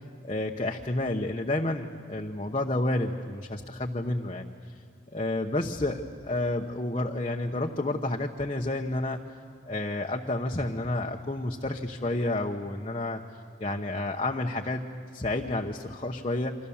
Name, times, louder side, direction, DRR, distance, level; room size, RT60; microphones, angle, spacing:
voice 1, 0.2-4.5 5.1-9.2 9.7-13.2 13.6-14.9 15.1-16.6, left 2 dB, 30° left, 1 dB, 0.9 m, -30 dB
29.0 x 25.0 x 7.2 m, 2.4 s
head